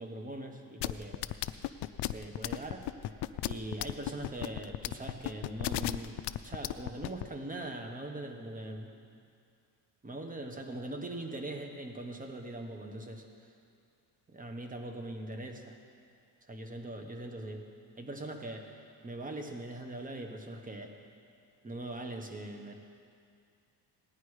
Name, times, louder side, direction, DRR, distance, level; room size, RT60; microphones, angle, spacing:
voice 1, 0.0-1.3 2.0-2.9 3.5-8.9 10.0-13.5 14.3-15.8 16.5-17.6 18.0-21.0 21.6-22.7, right 1 dB, 20° right, 4 dB, 1.2 m, -41 dB
sound 1, 0.8-7.2, left 15 dB, 65° left, 0.5 m, -33 dB
17.5 x 10.0 x 4.9 m, 2.4 s
cardioid pair, 140°, 43 cm